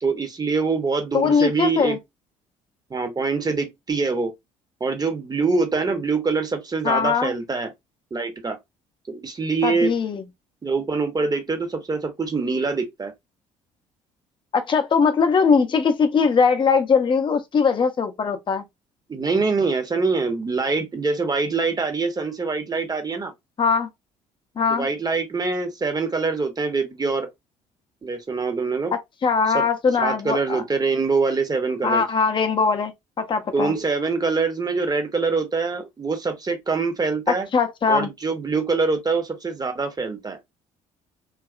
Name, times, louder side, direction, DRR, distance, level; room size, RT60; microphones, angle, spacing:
voice 1, 0.0-2.0 2.9-4.3 4.8-7.7 8.1-8.6 9.1-9.9 10.6-13.1 19.1-23.3 24.7-27.3 28.0-29.0 29.5-29.6 30.0-32.0 33.5-37.5 37.9-40.4, right 4 dB, 25° right, 0.8 m, -24 dB
voice 2, 1.1-2.0 6.8-7.3 9.6-10.2 14.5-18.6 23.6-23.9 24.6-24.9 28.9-30.6 31.8-32.9 33.2-33.7 37.3-38.1, left 5 dB, 30° left, 0.6 m, -20 dB
2.7 x 2.3 x 2.4 m
figure-of-eight pair, 55°, 17 cm